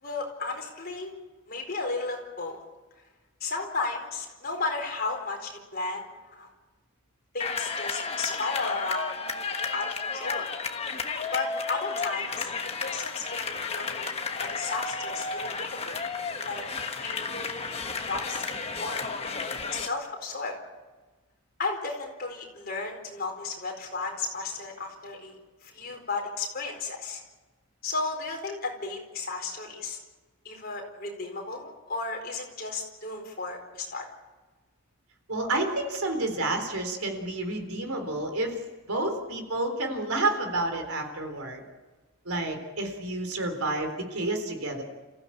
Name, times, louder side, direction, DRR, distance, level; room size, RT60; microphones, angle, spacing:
voice 1, 0.0-1.1 1.5-2.6 3.4-6.1 6.4-6.5 7.3-10.5 11.3-12.5 12.8-14.1 14.4-16.0 16.4-16.6 17.0-17.6 18.0-20.6 21.6-27.2 27.8-30.0 30.4-34.1, left 3 dB, 40° left, 2 dB, 4.4 m, -34 dB
sound 1, 7.4-19.9, left 4 dB, 25° left, 1.3 m, -33 dB
voice 2, 35.3-38.6 38.9-41.6 42.3-44.8, right 2 dB, 80° right, 5 dB, 3.9 m, -30 dB
28.5 x 15.5 x 8.7 m, 1.3 s
head